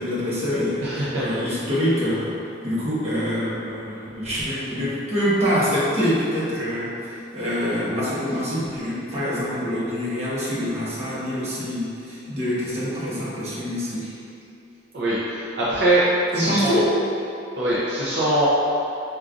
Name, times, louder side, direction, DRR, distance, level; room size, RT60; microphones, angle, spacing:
voice 1, 0.0-2.3 2.6-14.0 16.3-16.9, equal, 35° right, -9 dB, 0.9 m, -25 dB
voice 2, 0.8-1.2 14.9-16.0 16.3-16.8 17.6-18.5, right 1 dB, 65° right, -8 dB, 0.5 m, -22 dB
5.0 x 2.3 x 2.4 m, 2.7 s
head